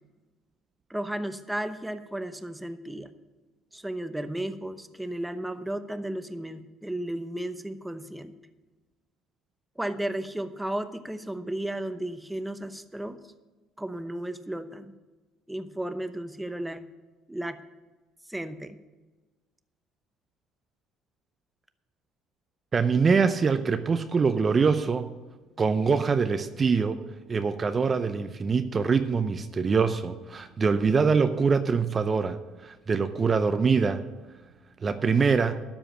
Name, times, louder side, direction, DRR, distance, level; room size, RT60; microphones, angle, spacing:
voice 1, 0.9-3.1 3.7-8.3 9.8-13.2 13.8-14.9 15.5-16.8 17.3-17.6 18.3-18.8, right 1 dB, 5° right, 10 dB, 0.8 m, -34 dB
voice 2, 22.7-25.1 25.6-27.0 27.3-34.0 34.8-35.6, right 5 dB, 35° right, 10 dB, 0.6 m, -24 dB
12.5 x 5.0 x 8.8 m, 1.2 s
hypercardioid pair, 65°, 0 cm